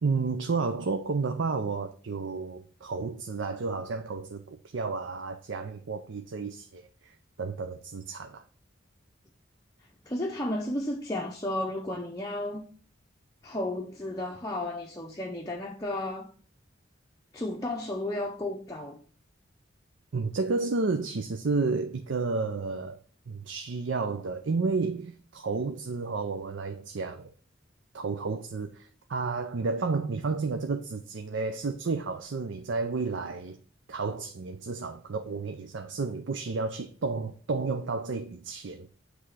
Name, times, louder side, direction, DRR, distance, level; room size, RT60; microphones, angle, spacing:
voice 1, 0.0-7.1 7.4-8.4 20.1-23.0 23.3-27.3 27.9-33.6 33.9-38.9, right 4 dB, 65° right, 0.5 m, -31 dB
voice 2, 10.1-12.7 13.4-16.3 17.3-19.0, left 1 dB, 20° left, 0.6 m, -33 dB
8.1 x 3.2 x 4.8 m
head